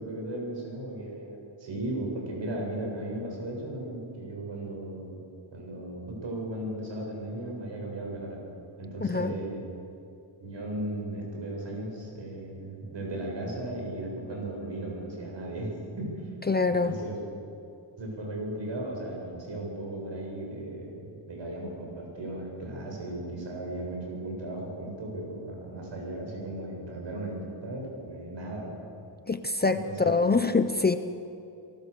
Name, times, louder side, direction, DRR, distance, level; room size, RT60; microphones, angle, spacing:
voice 1, 0.0-5.2 5.5-8.4 8.8-9.6 10.4-15.7 16.0-16.1 16.6-17.2 18.0-28.7 29.7-30.1, right 1 dB, 70° right, -1 dB, 7.6 m, -36 dB
voice 2, 9.0-9.3 16.5-17.0 29.3-31.0, left 4 dB, 20° left, 9 dB, 0.6 m, -25 dB
29.0 x 19.0 x 6.9 m, 2.7 s
wide cardioid pair, 170°, 46 cm